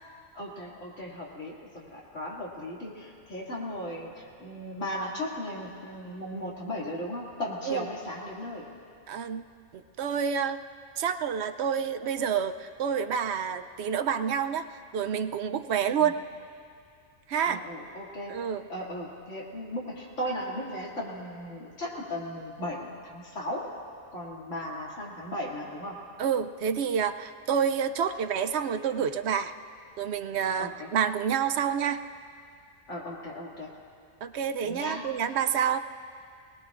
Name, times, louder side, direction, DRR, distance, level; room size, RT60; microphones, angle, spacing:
voice 1, 0.3-8.7 16.0-16.1 17.4-18.3 18.7-23.7 24.1-26.0 30.6-30.9 32.9-33.7 34.6-35.1, equal, 85° left, -5 dB, 2.8 m, -36 dB
voice 2, 9.1-9.4 9.7-10.6 11.0-14.7 14.9-16.2 17.3-17.6 18.3-18.6 26.2-29.5 30.0-32.0 34.2-35.8, right 7 dB, 65° right, 9 dB, 0.8 m, -28 dB
24.0 x 19.0 x 2.5 m, 2.4 s
omnidirectional pair, 1.2 m